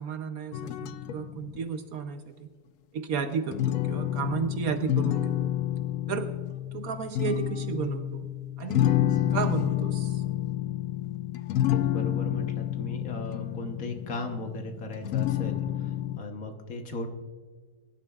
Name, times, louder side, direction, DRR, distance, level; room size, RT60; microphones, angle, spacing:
voice 1, 0.0-2.5 2.9-5.5 6.1-6.3 6.7-8.3 8.6-8.9 9.3-10.2, right 6 dB, 65° right, 8 dB, 1.0 m, -33 dB
sound 1, 0.5-1.6 3.5-16.2, left 12 dB, 75° left, 0.7 m, -29 dB
voice 2, 11.7-17.1, left 2 dB, 55° left, 4 dB, 1.4 m, -37 dB
22.0 x 11.5 x 2.3 m, 1.5 s
omnidirectional pair, 1.9 m